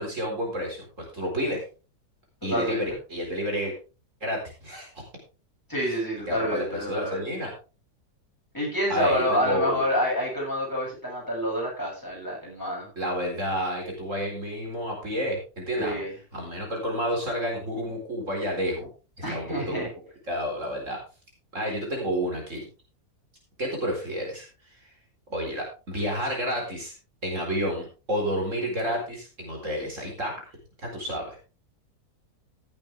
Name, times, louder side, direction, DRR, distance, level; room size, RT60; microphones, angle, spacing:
voice 1, 0.0-1.6 2.4-3.7 4.2-4.9 6.3-7.5 8.9-10.0 13.0-16.0 16.3-18.9 19.3-19.9 20.3-21.0 21.5-22.6 23.6-24.5 25.3-26.9 27.2-30.3 30.8-31.4, equal, 55° right, 0 dB, 4.7 m, -30 dB
voice 2, 2.4-2.8 5.7-7.2 8.5-12.9 15.7-16.1 19.2-19.9, equal, 10° left, -3 dB, 8.0 m, -28 dB
16.5 x 8.9 x 3.5 m, 0.33 s
omnidirectional pair, 1.6 m